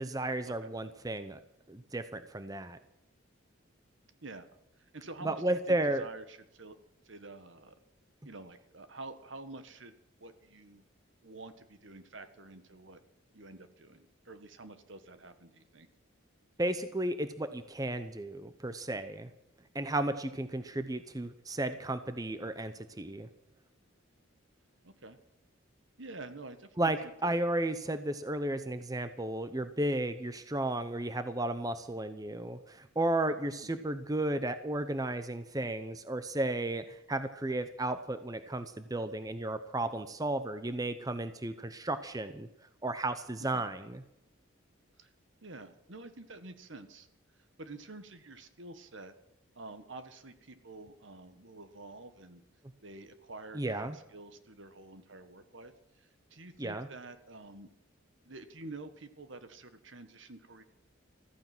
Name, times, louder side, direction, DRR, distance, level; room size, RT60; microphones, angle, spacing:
voice 1, 0.0-1.4 1.7-2.8 5.2-6.1 16.6-19.3 19.7-23.3 26.8-42.5 42.8-44.0 53.5-54.0 56.6-56.9, right 1 dB, 20° right, 11 dB, 0.7 m, -33 dB
voice 2, 4.9-6.8 7.0-7.8 8.2-9.9 10.2-10.8 11.2-13.0 13.3-15.9 24.8-25.2 26.0-27.3 33.6-33.8 43.4-43.6 45.0-45.1 45.4-47.1 47.6-49.1 49.5-52.4 52.8-57.7 58.2-60.6, right 2 dB, 65° right, 10 dB, 1.5 m, -48 dB
15.0 x 14.5 x 6.1 m, 0.84 s
head